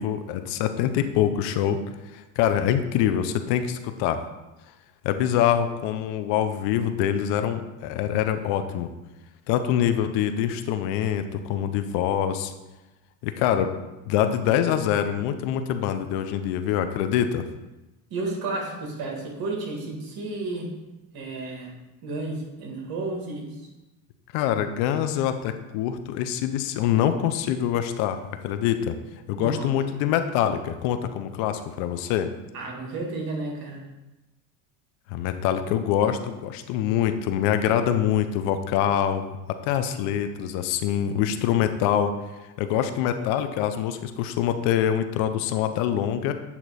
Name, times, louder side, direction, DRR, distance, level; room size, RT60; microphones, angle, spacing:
voice 1, 0.0-1.8 2.1-4.2 5.0-8.9 9.5-12.5 13.2-13.7 14.1-17.4 24.3-28.9 29.3-32.3 35.1-39.4 39.6-42.1 42.6-46.3, left 10 dB, 70° left, 9 dB, 0.7 m, -25 dB
voice 2, 18.1-20.7 21.1-21.8 22.0-23.6 29.4-29.7 32.5-33.8, right 2 dB, 55° right, 0 dB, 1.8 m, -32 dB
8.4 x 2.9 x 4.1 m, 1.0 s
supercardioid pair, 95°, 43 cm